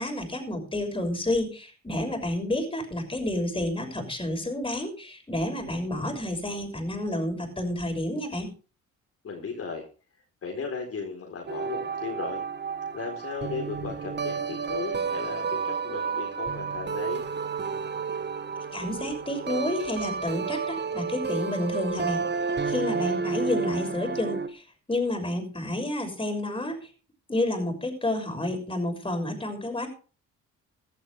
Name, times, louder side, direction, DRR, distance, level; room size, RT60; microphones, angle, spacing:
voice 1, 0.0-8.5 18.7-22.2 22.7-24.6 24.9-26.9 27.3-29.9, left 1 dB, 15° left, 5 dB, 6.3 m, -30 dB
voice 2, 9.2-9.9 10.4-12.4 12.9-17.3, left 5 dB, 50° left, 2 dB, 4.1 m, -36 dB
sound 1, 11.5-24.5, right 5 dB, 35° right, 1.5 m, -31 dB
16.0 x 12.5 x 3.5 m, 0.36 s
cardioid pair, 90°, 30 cm